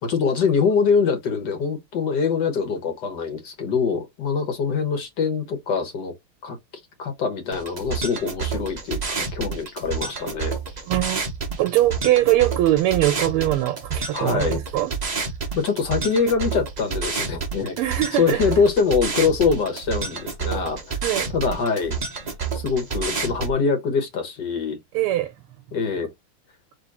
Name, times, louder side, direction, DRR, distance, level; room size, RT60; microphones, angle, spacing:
voice 1, 0.0-6.1 6.4-6.6 7.0-10.6 14.1-14.6 15.6-17.8 18.2-21.0 21.3-22.0 22.5-24.8 25.7-26.1, left 5 dB, 55° left, 1.6 m, -24 dB
sound 1, 7.5-23.5, right 5 dB, 40° right, 0.6 m, -29 dB
voice 2, 10.9-11.2 11.6-14.9 17.8-18.4 21.0-21.3 24.9-25.3, right 14 dB, 85° right, 1.6 m, -21 dB
3.8 x 3.0 x 4.1 m
omnidirectional pair, 2.4 m